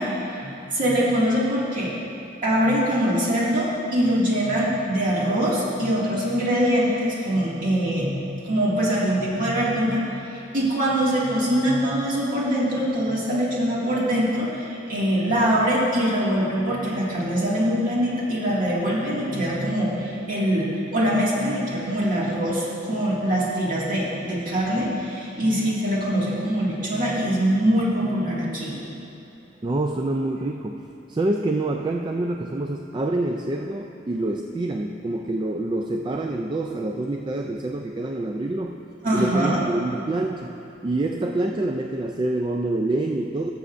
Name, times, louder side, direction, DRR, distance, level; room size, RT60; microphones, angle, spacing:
voice 1, 0.0-1.9 2.4-8.2 8.4-28.8 39.0-39.6, equal, 50° right, -6 dB, 2.1 m, -23 dB
voice 2, 29.6-30.8 31.1-38.8 39.1-40.5 40.8-43.5, right 2 dB, 25° right, 2 dB, 0.3 m, -26 dB
18.0 x 7.0 x 2.5 m, 2.8 s
head